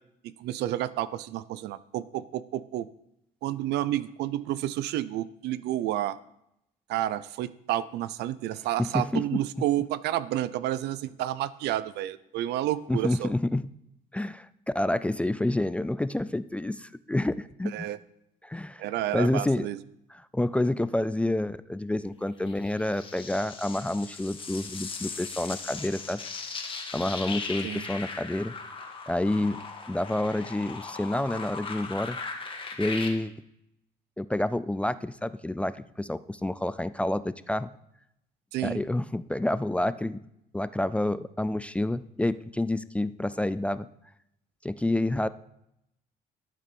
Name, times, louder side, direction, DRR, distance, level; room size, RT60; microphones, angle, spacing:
voice 1, 0.2-2.9 3.4-6.2 6.9-13.3 17.7-18.0 18.8-19.8 27.6-27.9 38.5-38.8, right 13 dB, 80° right, 17 dB, 0.5 m, -30 dB
voice 2, 8.8-9.4 12.9-13.7 14.1-14.5 14.7-17.9 18.4-18.8 19.1-19.7 20.1-26.2 26.9-28.5 29.1-32.2 32.8-33.3 34.2-37.7 38.6-40.2 40.5-43.9 44.6-45.3, left 1 dB, 5° left, 15 dB, 0.3 m, -28 dB
sound 1, 22.5-33.1, left 4 dB, 30° left, 1.8 m, -38 dB
12.0 x 6.7 x 5.4 m, 0.80 s
cardioid pair, 110°, 17 cm